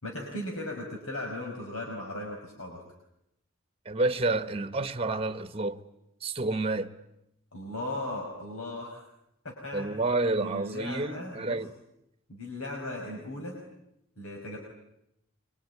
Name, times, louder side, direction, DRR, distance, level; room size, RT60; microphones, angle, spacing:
voice 1, 0.0-2.8 7.5-9.0 9.4-9.9 10.4-11.6 12.3-13.6 14.2-14.6, left 1 dB, 80° left, 5.4 m, -37 dB
voice 2, 3.8-5.8 6.2-6.9 9.7-11.7, right 2 dB, 25° right, 1.2 m, -29 dB
25.0 x 24.0 x 9.6 m
head